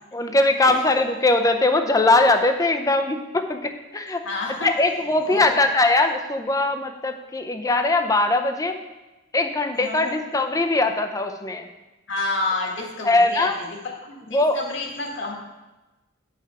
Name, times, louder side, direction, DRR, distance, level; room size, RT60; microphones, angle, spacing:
voice 1, 0.1-4.2 4.6-8.8 9.3-11.7 13.0-13.6 14.3-14.6, left 2 dB, 20° left, 6 dB, 0.6 m, -21 dB
voice 2, 4.2-4.7 5.2-5.6 9.8-10.2 12.1-13.5 14.0-15.3, left 2 dB, 70° left, 0 dB, 1.7 m, -29 dB
8.7 x 5.7 x 4.7 m, 1.1 s
head